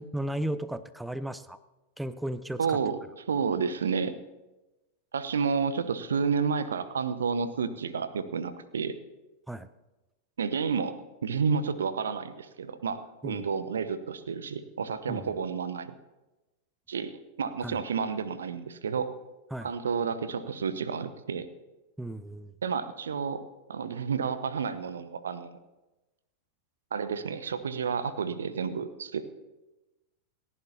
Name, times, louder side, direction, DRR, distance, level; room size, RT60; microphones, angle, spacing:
voice 1, 0.0-1.6 2.0-2.8 9.5-9.7 13.2-13.5 15.1-15.3 17.6-17.8 19.5-19.7 22.0-22.5, right 1 dB, 5° right, 15 dB, 0.6 m, -35 dB
voice 2, 2.6-3.0 3.3-4.1 5.1-9.0 10.4-16.0 16.9-19.1 19.6-21.5 22.6-23.4 23.7-25.6 26.9-29.2, right 6 dB, 70° right, 13 dB, 0.9 m, -30 dB
29.0 x 11.0 x 2.8 m, 1.1 s
figure-of-eight pair, 90°, 0 cm